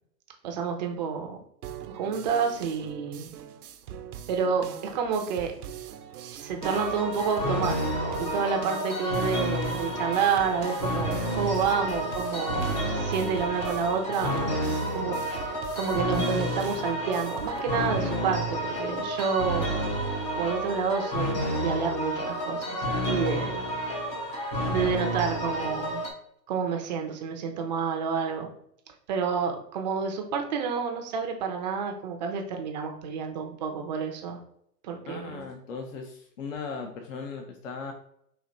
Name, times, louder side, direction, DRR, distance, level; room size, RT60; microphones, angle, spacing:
voice 1, 0.4-1.4 1.9-3.3 4.3-5.5 6.3-19.7 20.4-23.7 24.7-26.0 26.5-28.5 29.1-34.4 34.8-35.5, right 6 dB, 30° right, 3 dB, 0.6 m, -29 dB
sound 1, 1.6-17.6, right 8 dB, 65° right, 0.7 m, -42 dB
sound 2, 6.6-26.1, equal, 20° left, 0.5 m, -30 dB
voice 2, 35.1-37.9, left 5 dB, 50° left, 4 dB, 0.8 m, -38 dB
4.3 x 2.8 x 3.9 m, 0.72 s
hypercardioid pair, 130°, 50 cm